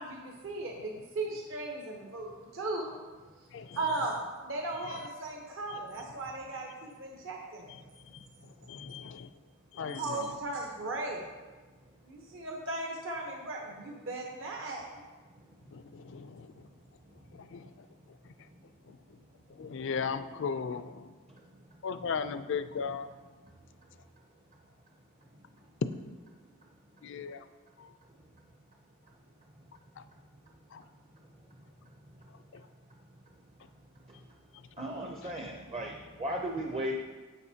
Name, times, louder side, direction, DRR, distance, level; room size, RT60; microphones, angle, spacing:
voice 1, 0.0-2.9 3.8-4.2 4.4-7.7 9.8-11.2 12.1-14.8, right 2 dB, 60° right, 0 dB, 0.9 m, -37 dB
voice 2, 8.7-9.3 9.7-10.4 15.7-16.5 17.3-17.7 18.9-19.0 19.6-21.1 21.8-23.1 27.0-27.4 27.8-27.9 30.7-30.8 32.5-32.6, left 6 dB, 55° left, 12 dB, 0.4 m, -37 dB
voice 3, 34.8-37.0, equal, 25° right, 1 dB, 0.6 m, -35 dB
10.5 x 7.4 x 2.8 m, 1.3 s
head